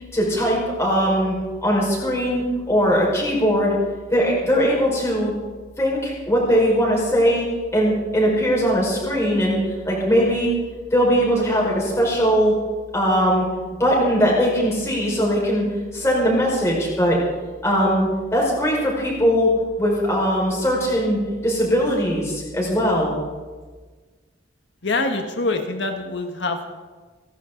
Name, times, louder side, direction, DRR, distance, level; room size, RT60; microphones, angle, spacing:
voice 1, 0.1-1.3 1.6-3.7 4.1-5.3 5.8-7.5 7.7-9.6 9.9-10.5 10.9-12.5 12.9-13.5 13.8-15.6 15.9-17.2 17.6-19.5 19.8-23.1, equal, 15° left, -4 dB, 5.2 m, -20 dB
voice 2, 24.8-26.7, left 3 dB, 80° left, 4 dB, 1.6 m, -25 dB
30.0 x 11.0 x 3.9 m, 1.4 s
head